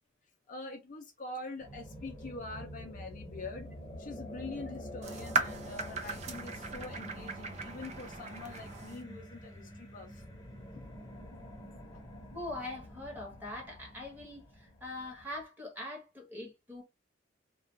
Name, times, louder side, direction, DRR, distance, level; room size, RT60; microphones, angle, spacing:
voice 1, 0.5-10.2 10.7-10.9 11.9-12.0, left 3 dB, 40° left, 0.5 m, -45 dB
sound 1, 1.6-15.4, equal, 20° left, 0.8 m, -47 dB
sound 2, 5.0-9.0, right 4 dB, 35° right, 0.4 m, -37 dB
voice 2, 12.3-16.8, left 1 dB, 10° right, 1.0 m, -42 dB
2.4 x 2.2 x 3.1 m
head